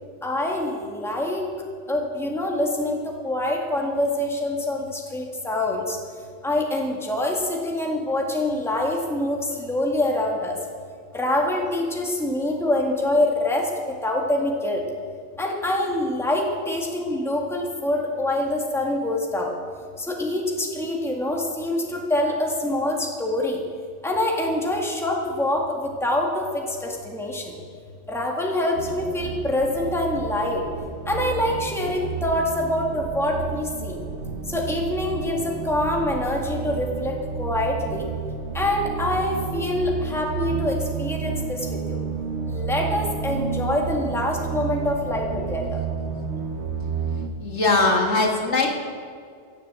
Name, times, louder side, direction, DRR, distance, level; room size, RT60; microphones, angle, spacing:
voice 1, 0.2-1.5 1.9-3.0 3.2-6.0 6.4-10.6 11.1-13.7 14.0-14.8 15.4-19.5 20.0-23.6 24.0-27.5 28.1-30.6 31.1-34.0 34.5-38.1 38.5-42.0 42.5-45.8, left 1 dB, ahead, -1 dB, 1.7 m, -25 dB
sound 1, 28.8-47.3, right 6 dB, 70° right, 1.2 m, -31 dB
voice 2, 47.4-48.7, left 3 dB, 65° left, 1 dB, 2.1 m, -20 dB
16.5 x 7.4 x 7.5 m, 2.1 s
omnidirectional pair, 1.2 m